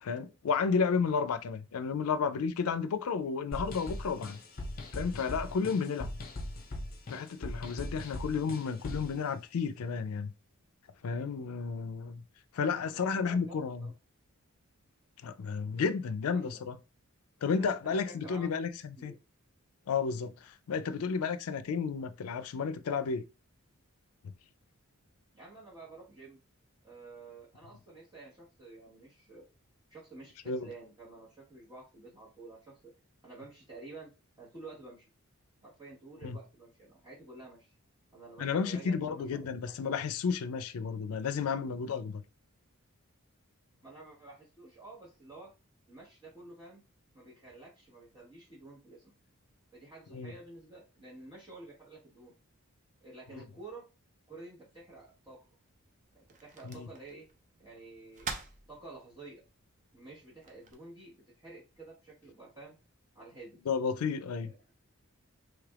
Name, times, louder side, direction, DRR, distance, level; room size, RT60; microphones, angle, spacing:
voice 1, 0.0-4.4 4.9-6.2 7.1-10.3 11.0-12.2 12.5-13.9 15.2-16.8 17.4-19.1 19.9-23.2 30.5-30.7 36.2-36.4 38.4-42.2 50.1-50.3 56.6-56.9 63.7-64.5, left 5 dB, 80° left, 0.4 m, -32 dB
sound 1, 3.5-9.2, left 1 dB, 45° left, 0.8 m, -40 dB
voice 2, 12.9-13.9 15.7-15.9 16.3-16.6 17.6-18.5 19.0-19.2 25.3-26.4 26.8-29.4 29.9-32.9 33.2-34.1 34.4-35.1 35.6-37.7 38.1-39.8 43.8-45.5 45.9-46.8 47.1-49.1 49.7-52.3 53.0-53.8 54.3-55.4 56.1-57.3 57.6-58.3 58.7-59.4 59.9-62.8 63.1-63.6 64.4-64.5, right 3 dB, 20° right, 1.1 m, -50 dB
sound 2, 54.7-60.7, right 4 dB, 35° right, 0.5 m, -48 dB
3.3 x 3.1 x 2.4 m
head